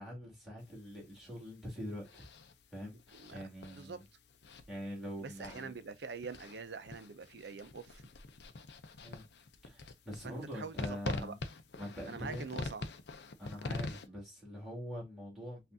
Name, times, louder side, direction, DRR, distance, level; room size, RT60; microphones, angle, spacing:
voice 1, 0.0-2.2 2.7-3.0 3.3-4.0 4.7-5.7 9.0-9.2 9.6-11.4 11.8-12.4 13.4-15.7, equal, ahead, 2.5 m, -44 dB
sound 1, 0.6-14.1, left 3 dB, 65° left, 0.6 m, -45 dB
voice 2, 3.1-3.4 3.7-4.0 5.2-8.0 10.2-11.3 12.1-12.9, right 5 dB, 65° right, 0.6 m, -44 dB
5.8 x 2.5 x 2.6 m
head